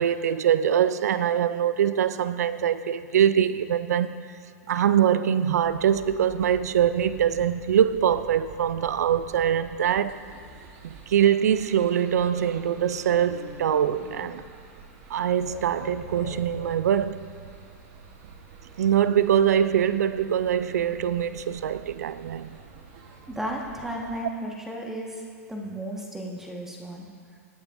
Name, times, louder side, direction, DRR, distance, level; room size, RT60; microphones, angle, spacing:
voice 1, 0.0-4.2 4.7-10.2 10.8-14.4 15.1-17.2 18.8-22.5, right 9 dB, 75° right, 0.4 m, -23 dB
sound 1, 5.6-24.2, right 4 dB, 55° right, 1.4 m, -49 dB
sound 2, 10.4-10.6 12.1-14.5 15.4-16.7, left 9 dB, 50° left, 0.7 m, -44 dB
voice 2, 23.3-25.2 25.5-27.1, right 1 dB, 5° right, 1.5 m, -34 dB
20.5 x 7.1 x 2.6 m
hypercardioid pair, 115°, 9 cm